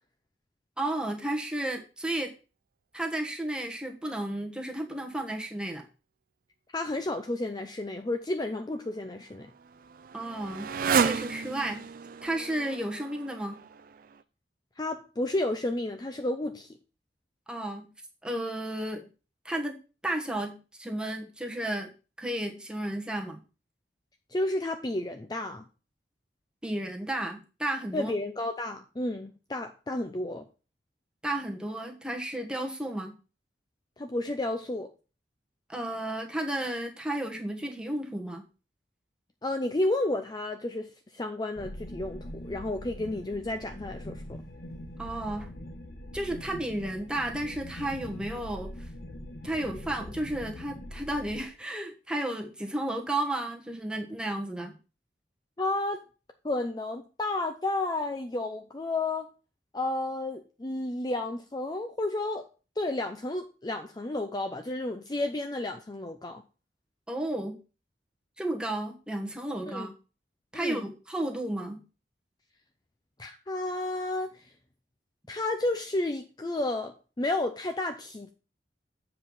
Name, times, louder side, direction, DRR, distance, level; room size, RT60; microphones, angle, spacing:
voice 1, 0.8-2.3 2.9-5.8 10.1-10.7 10.9-11.9 12.2-13.6 17.5-17.9 18.2-19.0 19.4-19.8 20.0-21.9 22.2-23.4 26.6-28.1 31.2-33.1 35.7-38.4 45.0-45.5 46.1-48.9 49.4-54.8 67.1-67.6 68.4-69.9 70.5-71.8, right 1 dB, 5° right, 1.2 m, -33 dB
voice 2, 6.7-9.5 14.8-16.7 24.3-25.6 27.9-30.4 34.0-34.9 39.4-40.9 41.1-44.2 55.6-56.0 56.4-59.3 59.7-62.5 62.8-66.4 69.7-69.9 70.5-70.8 73.2-74.4 75.3-78.3, left 2 dB, 25° left, 0.5 m, -31 dB
Motorcycle, 8.8-14.2, right 6 dB, 50° right, 0.4 m, -32 dB
sound 1, 41.6-51.4, left 1 dB, 55° left, 1.1 m, -42 dB
7.7 x 4.8 x 5.4 m
head